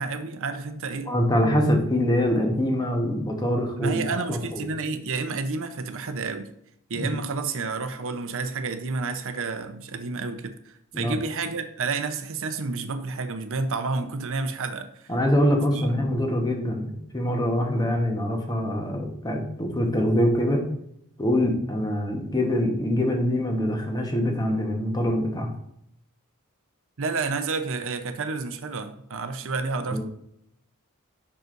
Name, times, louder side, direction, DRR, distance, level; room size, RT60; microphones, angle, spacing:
voice 1, 0.0-1.1 3.8-6.5 6.9-14.9 15.7-15.8 27.0-30.0, right 4 dB, 60° right, 8 dB, 0.7 m, -30 dB
voice 2, 1.1-4.6 6.9-7.1 10.9-11.1 15.1-20.6 21.2-25.5 29.9-30.0, equal, 20° left, 2 dB, 1.1 m, -24 dB
7.9 x 6.0 x 2.6 m, 0.74 s
head